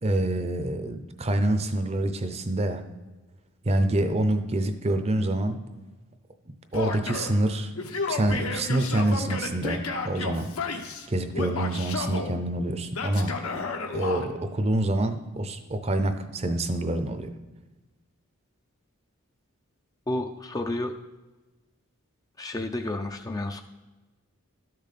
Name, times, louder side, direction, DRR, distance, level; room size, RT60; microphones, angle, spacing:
voice 1, 0.0-2.8 3.7-5.6 6.7-7.7 8.1-10.5 11.1-13.4 13.9-17.3, right 1 dB, 30° right, 9 dB, 0.6 m, -26 dB
Male speech man speaking / Yell, 6.7-7.4 7.8-11.1 11.3-12.3 12.9-14.3, left 4 dB, 75° left, 1.1 m, -32 dB
voice 2, 20.1-21.0 22.4-23.6, left 1 dB, 15° left, 6 dB, 0.4 m, -31 dB
12.5 x 6.5 x 4.2 m, 1.2 s
head